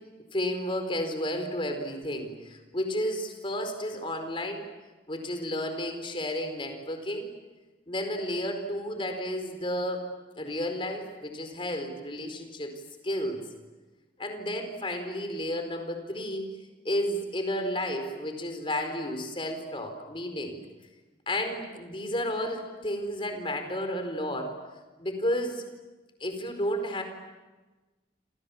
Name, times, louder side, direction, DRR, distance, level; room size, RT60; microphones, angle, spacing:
voice 1, 0.3-4.7 5.1-7.3 7.9-10.1 10.4-12.7 13.0-13.4 14.2-16.5 16.8-20.6 21.3-24.5 25.0-25.6 26.2-27.0, left 1 dB, 30° left, 6 dB, 4.6 m, -32 dB
29.5 x 27.0 x 7.3 m, 1.2 s
head